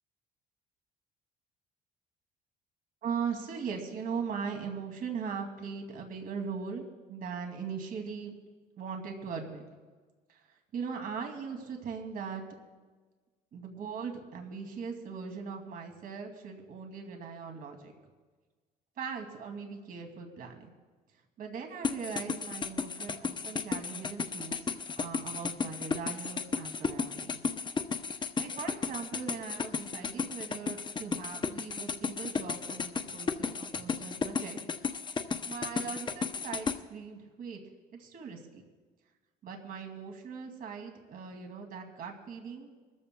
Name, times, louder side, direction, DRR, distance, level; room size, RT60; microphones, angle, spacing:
voice 1, 3.0-8.3 8.8-9.6 10.3-12.4 13.5-17.9 19.0-20.7 21.4-24.6 24.9-27.5 28.4-34.6 35.5-37.6 38.0-38.6 39.4-42.8, right 6 dB, 60° right, 3 dB, 2.5 m, -40 dB
sound 1, 21.8-36.8, left 5 dB, 25° left, 0.7 m, -34 dB
23.5 x 14.0 x 2.3 m, 1.4 s
cardioid pair, 110°, 17 cm